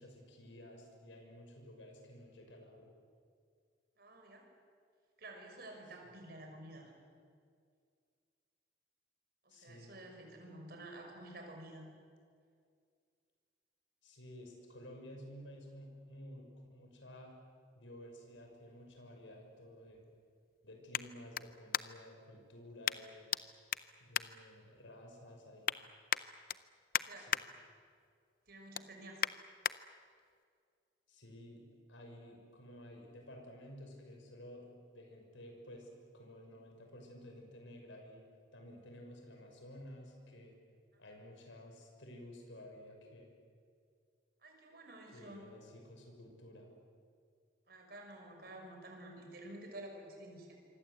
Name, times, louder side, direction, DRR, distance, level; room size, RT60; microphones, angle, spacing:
voice 1, 0.0-2.9 6.0-6.1 9.5-10.0 14.0-17.4 17.7-20.1 20.6-23.3 24.0-25.7 27.1-27.4 31.1-31.6 31.9-35.9 36.1-38.2 38.5-40.6 41.0-43.3 45.1-46.7, left 1 dB, 90° left, 2 dB, 6.3 m, -53 dB
voice 2, 4.0-4.4 5.2-6.9 9.4-11.9 27.0-27.3 28.5-29.2 44.4-45.5 47.7-50.6, right 1 dB, 55° right, 2 dB, 5.8 m, -51 dB
sound 1, 18.1-22.2 22.8-23.4 23.7-25.0 25.4-25.8 26.1-27.4 27.9-28.1 28.5-29.8 30.3-30.4, left 9 dB, 50° left, 0.6 m, -38 dB
26.5 x 24.5 x 8.2 m, 2.2 s
head